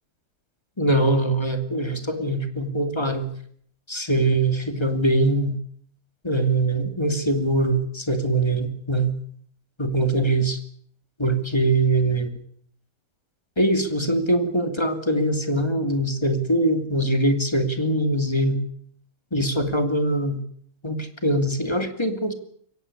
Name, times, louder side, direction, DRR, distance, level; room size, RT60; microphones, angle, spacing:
voice 1, 0.8-3.3 3.9-5.6 6.2-9.1 9.8-10.6 11.2-12.3 13.6-18.6 19.3-20.4 20.8-22.3, right 1 dB, 10° left, 8 dB, 2.6 m, -22 dB
23.5 x 17.0 x 9.9 m, 0.63 s
omnidirectional pair, 2.4 m